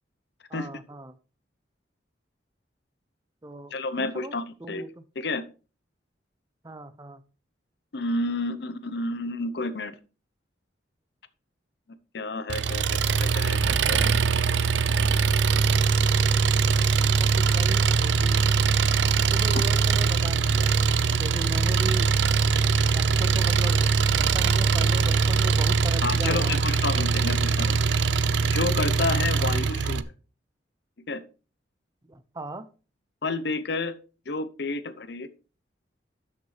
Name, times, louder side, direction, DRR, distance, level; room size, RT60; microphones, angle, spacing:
voice 1, 0.5-1.1 3.4-5.0 6.6-7.2 17.0-18.4 19.0-20.7 21.2-22.1 22.9-23.8 24.2-26.7 29.4-29.5 32.0-32.7, right 1 dB, 20° right, 0.5 m, -38 dB
voice 2, 3.7-4.8 5.2-5.4 7.9-10.0 12.1-14.1 26.0-27.8 28.5-30.0 31.1-31.2 33.2-33.9 34.3-35.3, left 3 dB, 60° left, 0.8 m, -30 dB
Engine, 12.5-30.0, right 5 dB, 70° right, 0.5 m, -22 dB
12.5 x 6.6 x 3.3 m
head